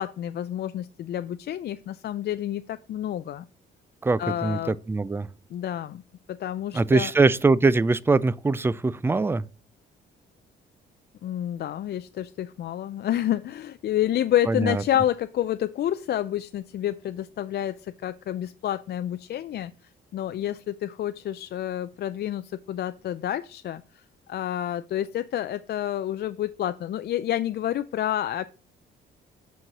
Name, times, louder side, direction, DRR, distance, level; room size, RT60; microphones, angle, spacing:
voice 1, 0.0-3.5 4.2-4.8 5.5-6.0 6.3-7.1 11.2-19.7 20.1-23.8 24.3-28.4, left 11 dB, 55° left, 0.4 m, -29 dB
voice 2, 4.0-5.3 6.7-9.4 14.5-14.8, right 3 dB, 10° right, 0.3 m, -22 dB
5.7 x 5.3 x 6.0 m
cardioid pair, 90°, 20 cm